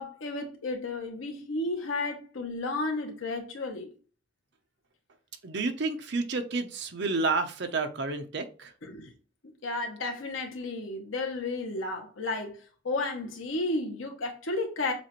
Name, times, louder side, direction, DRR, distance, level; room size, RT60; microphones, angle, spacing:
voice 1, 0.0-3.9 8.8-9.1 9.6-12.6 12.8-14.9, left 2 dB, 90° left, 1.1 m, -32 dB
voice 2, 5.4-8.7, right 3 dB, 60° right, 0.7 m, -30 dB
7.1 x 2.5 x 3.0 m
head